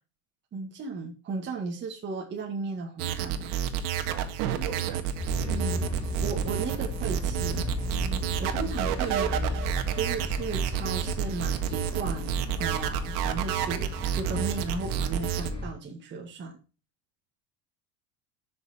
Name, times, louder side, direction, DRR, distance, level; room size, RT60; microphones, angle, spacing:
voice 1, 0.5-3.6 5.5-5.9 6.2-7.7 8.4-9.6 9.9-16.6, right 4 dB, 25° right, 1.9 m, -35 dB
sound 1, 3.0-15.5, right 9 dB, 80° right, 1.8 m, -30 dB
voice 2, 4.1-5.6, right 9 dB, 50° right, 2.5 m, -41 dB
sound 2, 5.2-15.7, left 2 dB, 10° left, 3.3 m, -35 dB
12.5 x 6.1 x 4.2 m
cardioid pair, 170°, 45 cm